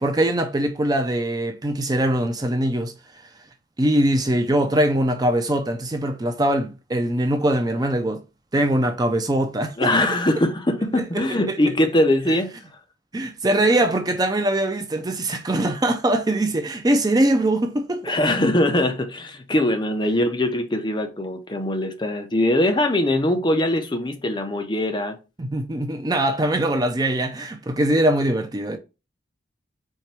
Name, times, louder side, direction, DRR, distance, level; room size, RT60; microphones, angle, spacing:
voice 1, 0.0-2.9 3.8-8.2 8.5-9.9 11.1-11.6 13.1-18.1 25.4-28.8, right 1 dB, 20° right, 0.5 m, -22 dB
voice 2, 9.8-12.5 18.0-25.2, left 1 dB, 25° left, 0.7 m, -22 dB
4.4 x 3.4 x 3.3 m
head